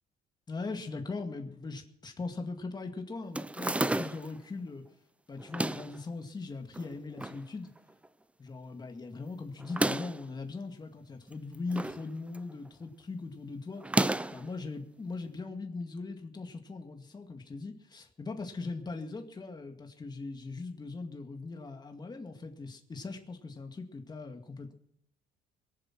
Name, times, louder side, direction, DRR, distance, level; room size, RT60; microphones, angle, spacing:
voice 1, 0.5-4.8 5.3-7.7 8.4-13.8 14.3-24.7, left 3 dB, 25° left, 5 dB, 2.0 m, -40 dB
sound 1, 3.3-4.4 5.4-6.0 6.7-7.4 7.8-7.9 8.0-8.1 9.6-10.2 11.3-12.0 12.3-12.7 13.8-14.5, right 2 dB, 5° right, 0.5 m, -31 dB
22.5 x 7.6 x 6.0 m, 0.78 s
cardioid pair, 110°, 17 cm